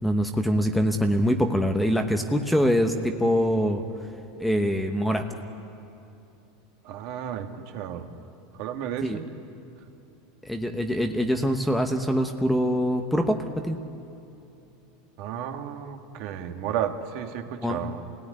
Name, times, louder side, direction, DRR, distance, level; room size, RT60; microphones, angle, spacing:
voice 1, 0.0-3.8 4.4-5.3 9.0-9.2 10.4-13.8 17.6-17.9, equal, ahead, 5 dB, 1.0 m, -24 dB
voice 2, 6.9-7.5 7.7-8.1 8.6-9.2 15.2-18.0, right 9 dB, 55° right, 5 dB, 1.8 m, -32 dB
27.0 x 17.5 x 9.9 m, 2.8 s
supercardioid pair, 155°, 0 cm